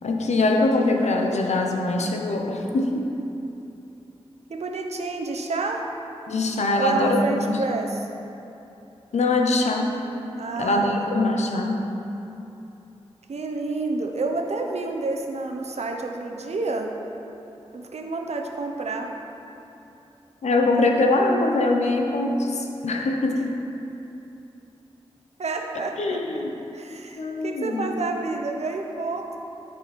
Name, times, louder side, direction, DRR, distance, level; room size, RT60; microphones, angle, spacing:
voice 1, 0.0-3.1 6.3-7.6 9.1-10.0 10.6-11.8 20.4-23.6 26.0-26.6 27.2-27.9, left 2 dB, 90° left, 2 dB, 0.9 m, -23 dB
voice 2, 4.5-5.8 6.8-8.0 10.4-11.0 13.3-16.9 17.7-19.1 25.4-26.2 26.7-29.4, right 3 dB, 75° right, 2 dB, 0.9 m, -29 dB
13.5 x 4.8 x 4.3 m, 2.9 s
cardioid pair, 45°, 11 cm